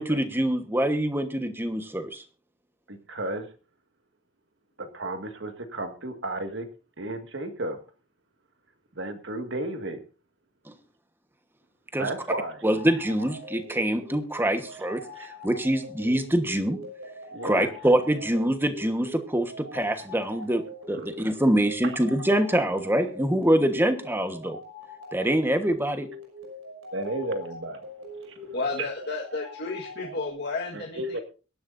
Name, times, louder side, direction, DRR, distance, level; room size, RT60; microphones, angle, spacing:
voice 1, 0.0-2.2 11.9-12.1 12.6-16.8 17.4-20.6 20.9-24.6 25.1-26.1, right 1 dB, 10° right, 8 dB, 1.2 m, -25 dB
voice 2, 2.9-3.5 4.8-6.7 7.0-7.8 9.0-10.0 12.0-12.6 17.3-17.7 20.9-21.1 21.8-22.0 26.9-27.8 28.2-28.4 28.8-28.9 30.7-31.2, right 2 dB, 60° right, 6 dB, 1.9 m, -33 dB
sound 1, 12.7-30.3, equal, 80° right, 6.3 m, -43 dB
voice 3, 28.5-31.2, left 3 dB, 55° left, 0 dB, 1.6 m, -32 dB
23.0 x 11.0 x 2.6 m, 0.34 s
head